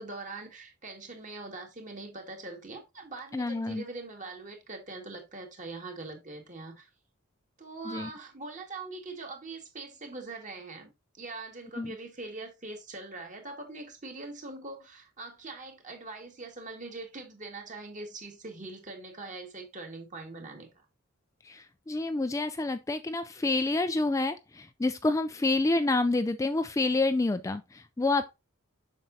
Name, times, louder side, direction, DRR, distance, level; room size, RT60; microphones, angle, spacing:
voice 1, 0.0-6.9 7.6-10.9 11.2-20.7, right 3 dB, 35° right, 1.8 m, -42 dB
voice 2, 3.3-3.8 7.8-8.1 11.8-12.0 21.4-28.3, left 2 dB, 15° left, 0.3 m, -28 dB
7.3 x 5.9 x 2.7 m
head